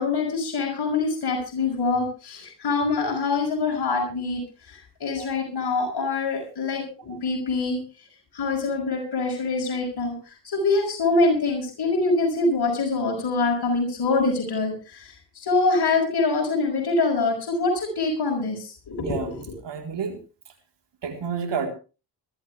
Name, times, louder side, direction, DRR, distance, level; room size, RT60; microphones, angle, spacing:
voice 1, 0.0-4.4 4.7-7.8 8.3-19.4, left 3 dB, 60° left, 1 dB, 6.0 m, -25 dB
voice 2, 19.0-19.3 19.6-20.2 21.0-21.7, right 6 dB, 75° right, 4 dB, 4.3 m, -30 dB
21.0 x 13.5 x 3.5 m, 0.34 s
supercardioid pair, 45°, 43 cm